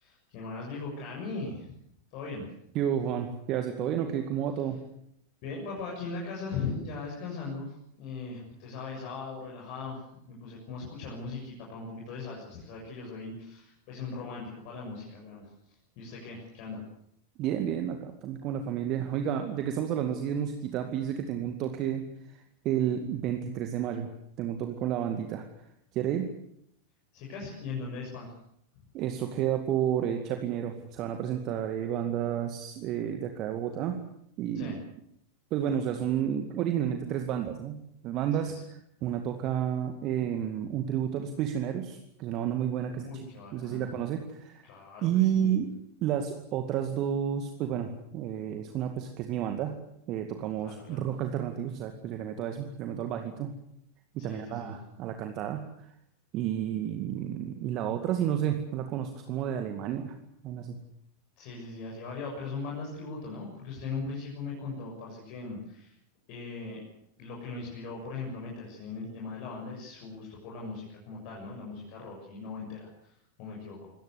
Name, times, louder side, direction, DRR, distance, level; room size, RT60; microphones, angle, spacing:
voice 1, 0.0-1.7 2.1-2.5 5.4-16.8 27.1-28.3 34.5-34.8 42.8-44.0 44.6-45.5 50.6-51.1 54.2-54.7 61.4-65.9 66.3-66.8 67.2-73.9, left 4 dB, 45° left, -1 dB, 7.0 m, -39 dB
voice 2, 2.7-4.8 17.4-24.1 24.4-25.5 25.9-26.3 28.9-34.0 34.4-34.7 35.5-43.1 43.5-44.7 45.0-45.7 46.0-49.8 50.1-53.5 54.1-55.7 56.3-60.2 60.4-60.8, right 9 dB, 40° right, 6 dB, 2.2 m, -31 dB
24.5 x 18.5 x 8.2 m, 0.73 s
figure-of-eight pair, 90°, 0 cm